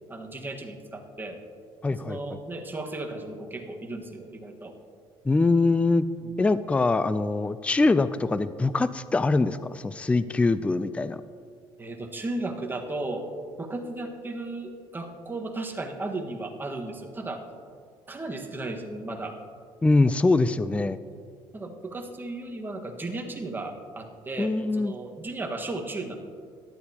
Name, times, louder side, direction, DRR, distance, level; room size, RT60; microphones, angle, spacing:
voice 1, 0.1-1.4 1.9-4.7 6.2-6.3 11.8-13.3 13.6-17.4 18.1-19.4 20.7-20.8 21.5-26.2, right 2 dB, 20° right, 2 dB, 1.5 m, -35 dB
voice 2, 1.8-2.2 5.2-6.1 6.4-11.2 19.8-21.0 24.4-24.9, left 3 dB, 10° left, 14 dB, 0.4 m, -23 dB
18.0 x 12.0 x 2.9 m, 2.1 s
cardioid pair, 100°, 10 cm